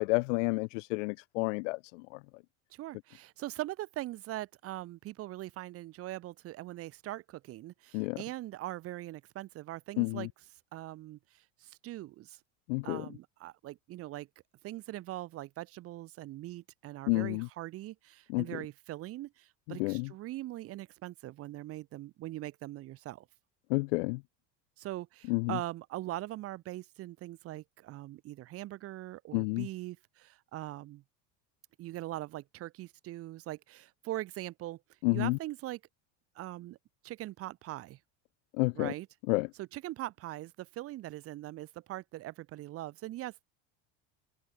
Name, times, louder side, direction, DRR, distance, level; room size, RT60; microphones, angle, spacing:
voice 1, 0.0-2.2 7.9-8.2 10.0-10.3 12.7-13.0 17.1-17.5 18.3-18.4 19.8-20.1 23.7-24.2 25.3-25.6 29.3-29.7 35.0-35.4 38.6-38.9 39.3-39.5, left 27 dB, 85° left, 1.0 m, -30 dB
voice 2, 2.7-10.3 10.7-12.4 12.8-14.3 14.6-23.2 24.8-31.0 31.8-34.8 35.1-35.8 36.3-36.8 37.0-38.0 38.7-39.1 39.6-43.3, right 16 dB, 40° right, 4.5 m, -41 dB
cardioid pair, 175°, 36 cm